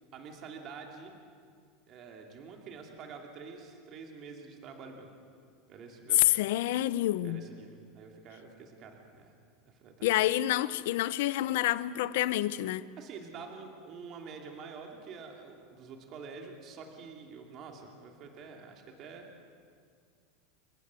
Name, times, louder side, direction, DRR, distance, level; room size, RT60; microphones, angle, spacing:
voice 1, 0.1-1.1 1.9-5.1 5.7-6.5 7.2-9.3 9.7-10.2 13.0-19.3, right 5 dB, 30° right, 2.7 m, -47 dB
voice 2, 6.2-7.4 10.0-12.9, left 14 dB, 70° left, 0.7 m, -28 dB
28.5 x 16.0 x 8.3 m
supercardioid pair, 170°, 0 cm